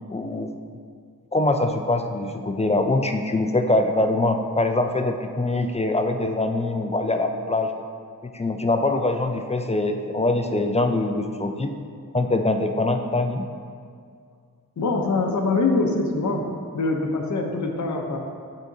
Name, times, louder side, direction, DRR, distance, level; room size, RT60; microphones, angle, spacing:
voice 1, 0.1-0.6 1.3-7.7 8.2-11.7 12.1-13.5, left 2 dB, 20° left, 5 dB, 0.3 m, -23 dB
voice 2, 14.8-16.4 16.7-18.2, left 3 dB, 55° left, 2 dB, 0.7 m, -23 dB
9.7 x 3.9 x 2.7 m, 2.2 s
wide cardioid pair, 60°, 35 cm